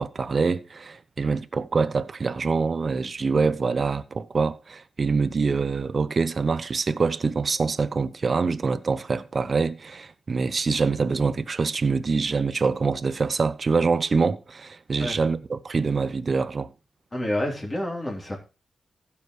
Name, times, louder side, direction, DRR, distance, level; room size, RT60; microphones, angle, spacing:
voice 1, 0.0-16.7, right 4 dB, 45° right, 0.7 m, -25 dB
voice 2, 17.1-18.4, left 1 dB, 20° left, 3.5 m, -28 dB
15.5 x 7.1 x 3.2 m
wide cardioid pair, 105°, 0 cm